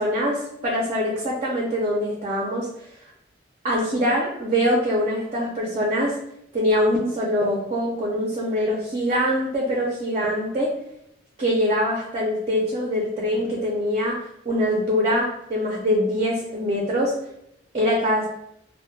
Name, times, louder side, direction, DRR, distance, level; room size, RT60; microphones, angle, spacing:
voice 1, 0.0-2.7 3.6-6.2 6.5-10.7 11.4-14.2 14.5-17.1 17.7-18.3, equal, 35° right, -2 dB, 0.4 m, -23 dB
2.1 x 2.0 x 3.1 m, 0.80 s
head